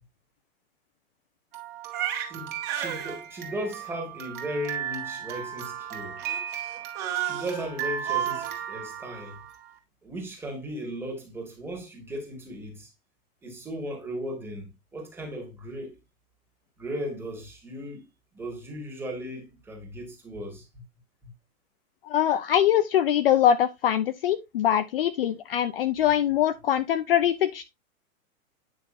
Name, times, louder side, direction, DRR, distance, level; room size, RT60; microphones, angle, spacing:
Crying sobbing, 1.5-9.7, right 10 dB, 25° right, 2.2 m, -33 dB
voice 1, 2.3-6.2 7.2-9.4 10.0-12.9 13.4-16.0 16.8-18.1 18.3-20.7, equal, 5° right, 2.3 m, -36 dB
voice 2, 22.0-27.6, left 10 dB, 40° left, 0.7 m, -23 dB
9.6 x 5.9 x 2.7 m
hypercardioid pair, 165°, 43 cm